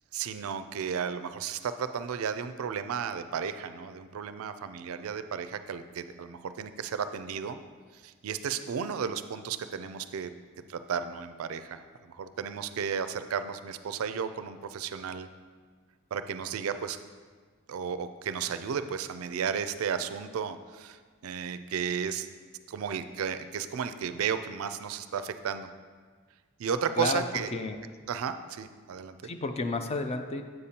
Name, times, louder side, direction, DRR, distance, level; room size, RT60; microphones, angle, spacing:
voice 1, 0.1-7.6 8.0-10.3 10.7-15.3 16.1-17.0 17.7-22.3 22.7-25.7 26.6-27.5 28.1-29.2, right 7 dB, 75° right, 11 dB, 0.4 m, -33 dB
voice 2, 27.0-27.8 29.2-30.4, left 3 dB, 30° left, 7 dB, 0.4 m, -32 dB
7.8 x 6.8 x 2.8 m, 1.5 s
head